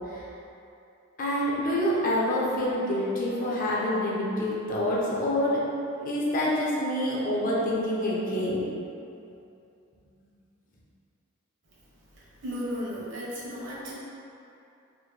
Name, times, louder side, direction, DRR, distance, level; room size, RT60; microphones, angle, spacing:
voice 1, 1.2-5.6 5.9-8.6, left 1 dB, 40° left, -5 dB, 0.7 m, -27 dB
voice 2, 12.1-13.9, equal, 60° right, -7 dB, 1.1 m, -35 dB
4.2 x 2.6 x 3.2 m, 2.7 s
head